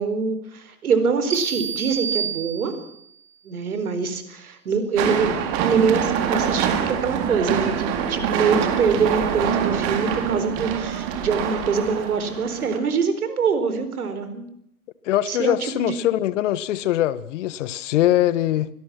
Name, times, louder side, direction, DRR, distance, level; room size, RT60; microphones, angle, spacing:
voice 1, 0.0-2.7 3.4-5.3 5.6-14.5 15.3-15.9, right 5 dB, 75° right, 4.5 m, -24 dB
sound 1, 1.3-3.1, right 7 dB, 90° right, 1.3 m, -29 dB
sound 2, 5.0-12.8, right 8 dB, 40° right, 3.8 m, -25 dB
voice 2, 15.0-18.7, left 13 dB, 55° left, 1.3 m, -22 dB
24.5 x 18.5 x 6.1 m
hypercardioid pair, 110°, 44 cm